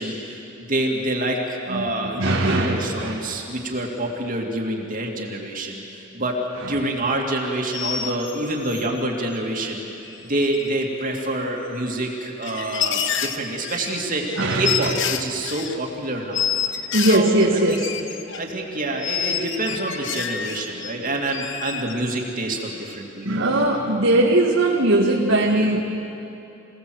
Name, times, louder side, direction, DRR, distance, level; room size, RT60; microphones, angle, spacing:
voice 1, 0.0-6.4 6.7-9.9 10.2-16.5 17.0-17.8 18.4-23.5, right 1 dB, 45° right, 0 dB, 2.5 m, -27 dB
voice 2, 1.7-3.1 14.4-14.9 16.9-17.8 23.2-25.8, right 1 dB, 75° right, -3 dB, 1.9 m, -20 dB
sound 1, 7.7-8.9 10.1-10.2 10.4-10.8 11.2-11.3 12.2-15.7 16.3-18.4 19.0-20.9 21.3-22.3 22.7-23.0, left 8 dB, 65° left, 1.1 m, -28 dB
27.0 x 17.5 x 7.9 m, 2.9 s
head